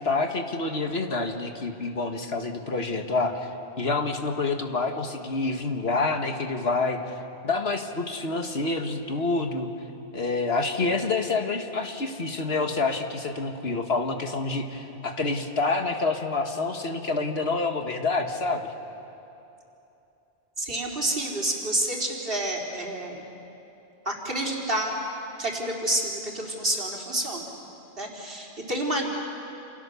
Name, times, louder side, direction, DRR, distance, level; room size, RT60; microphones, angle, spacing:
voice 1, 0.0-3.5 3.8-7.0 7.4-9.7 10.1-18.7, left 3 dB, 70° left, 5 dB, 1.9 m, -27 dB
voice 2, 20.6-23.2 24.1-25.0 25.4-27.5 28.0-29.1, right 1 dB, 60° right, -1 dB, 3.9 m, -29 dB
28.5 x 28.5 x 7.0 m, 2.9 s
omnidirectional pair, 1.1 m